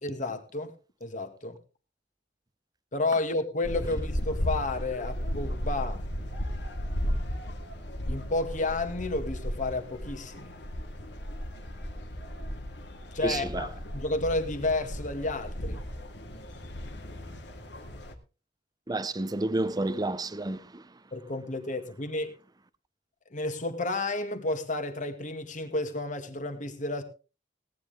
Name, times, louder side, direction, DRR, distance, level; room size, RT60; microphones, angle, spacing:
voice 1, 0.0-0.7 1.0-1.6 2.9-6.0 8.1-10.5 13.1-15.8 21.1-22.3 23.3-27.0, left 2 dB, 45° left, 2.0 m, -31 dB
sound 1, 3.6-18.1, equal, 70° left, 2.2 m, -35 dB
voice 2, 13.2-13.6 18.9-20.8, right 2 dB, 20° right, 0.6 m, -30 dB
18.0 x 10.5 x 3.7 m
head